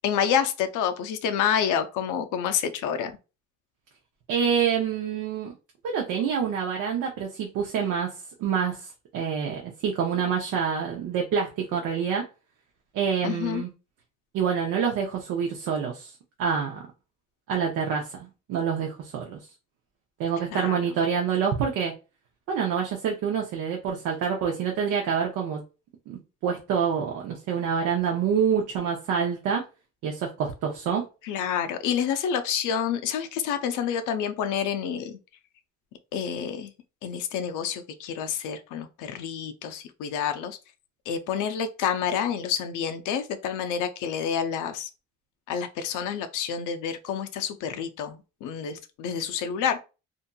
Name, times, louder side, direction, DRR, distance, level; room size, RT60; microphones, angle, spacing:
voice 1, 0.0-3.1 13.2-13.6 20.5-20.8 31.2-35.2 36.1-36.7 37.0-40.6 41.1-44.9 45.5-49.8, left 8 dB, 85° left, 0.5 m, -28 dB
voice 2, 4.3-5.5 5.8-12.2 12.9-13.7 14.3-16.1 16.4-16.8 17.5-19.4 20.2-21.9 22.5-25.6 26.1-29.6 30.0-31.0, right 7 dB, 85° right, 0.6 m, -27 dB
2.7 x 2.5 x 2.2 m
cardioid pair, 90°, 30 cm